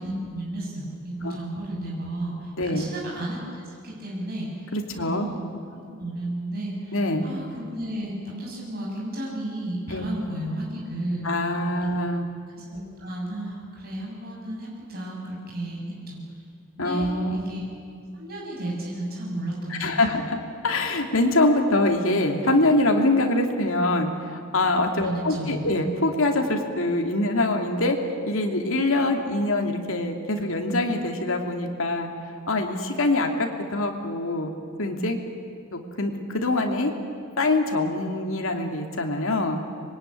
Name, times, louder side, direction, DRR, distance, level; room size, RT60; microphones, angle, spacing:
voice 1, 0.0-5.4 5.7-7.0 7.2-11.3 12.6-16.2 16.8-17.6 18.1-20.2 25.0-25.7, right 1 dB, 45° right, -3 dB, 7.1 m, -33 dB
voice 2, 2.6-2.9 4.7-5.3 6.9-7.3 9.9-10.1 11.2-12.3 16.8-17.4 19.7-20.4 20.6-28.0 28.3-32.1 32.5-34.5 34.8-35.2 35.7-36.9 37.4-39.6, left 2 dB, 70° left, 3 dB, 2.8 m, -24 dB
25.5 x 22.0 x 10.0 m, 2.4 s
head